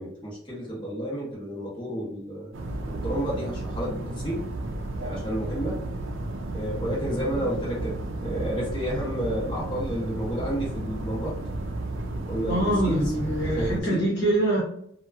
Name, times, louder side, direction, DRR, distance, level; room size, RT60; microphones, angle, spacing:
voice 1, 0.0-2.5 2.9-4.5 5.0-5.8 6.5-11.3 12.3-13.1 13.4-14.1, right 1 dB, 25° left, -7 dB, 1.2 m, -31 dB
sound 1, 2.5-13.8, right 2 dB, 70° right, 0.4 m, -33 dB
voice 2, 12.5-14.6, right 1 dB, 55° left, -5 dB, 1.1 m, -24 dB
2.8 x 2.3 x 2.4 m, 0.70 s
head